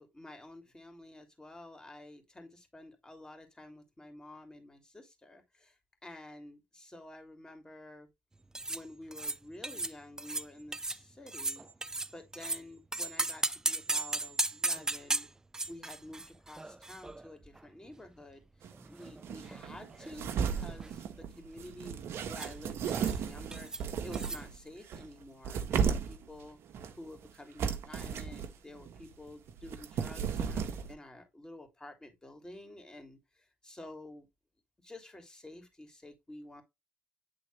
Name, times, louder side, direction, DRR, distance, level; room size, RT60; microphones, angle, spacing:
voice 1, 0.0-8.1 8.7-11.7 12.1-15.3 15.7-26.6 26.9-34.3 34.8-36.6, left 1 dB, 15° left, 2.7 m, -50 dB
sound 1, 8.5-8.8 9.1-9.4 9.6-9.9 10.2-10.5 10.7-11.0 11.3-12.6 12.9-17.6 17.9-18.0 18.7-19.6 19.9-20.2 20.4-20.9 22.3-22.5 22.9-23.2 23.5-23.8 24.1-24.4, right 2 dB, 15° right, 0.4 m, -36 dB
sound 2, 18.6-18.7 19.0-24.6 24.9-26.3 26.7-27.3 27.6-28.5 28.7-30.9, right 7 dB, 70° right, 1.1 m, -35 dB
8.7 x 3.9 x 3.2 m
cardioid pair, 85°, 4 cm